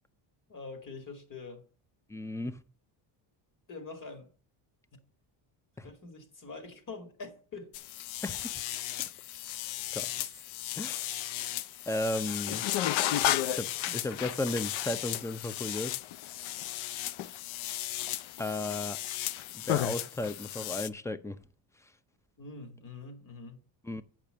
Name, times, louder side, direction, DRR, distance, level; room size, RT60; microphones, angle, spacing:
voice 1, 0.5-1.6 3.7-4.3 5.8-7.7 13.9-14.0 22.4-23.6, left 3 dB, 40° left, 2.6 m, -44 dB
voice 2, 2.1-2.6 5.8-5.9 8.2-8.5 9.9-10.3 10.7-11.2 11.9-12.6 13.5-13.7 13.9-15.9 18.4-19.0 19.5-21.4 23.8-24.0, left 2 dB, 5° left, 0.5 m, -34 dB
sound 1, 7.7-20.9, left 13 dB, 80° left, 0.7 m, -34 dB
8.7 x 6.1 x 6.7 m
cardioid pair, 120°, 47 cm